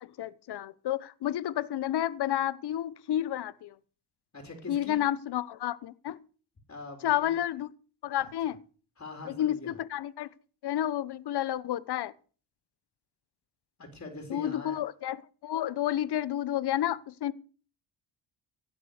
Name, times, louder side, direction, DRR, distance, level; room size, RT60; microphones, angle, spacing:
voice 1, 0.0-3.7 4.7-6.2 7.0-7.7 8.0-8.6 9.3-10.3 10.6-12.1 14.3-17.3, left 12 dB, 60° left, 1.0 m, -30 dB
voice 2, 4.3-5.0 6.7-7.3 8.2-8.3 9.0-9.8 13.8-14.8, left 2 dB, 30° left, 4.0 m, -43 dB
16.5 x 7.6 x 6.6 m
cardioid pair, 85°, 44 cm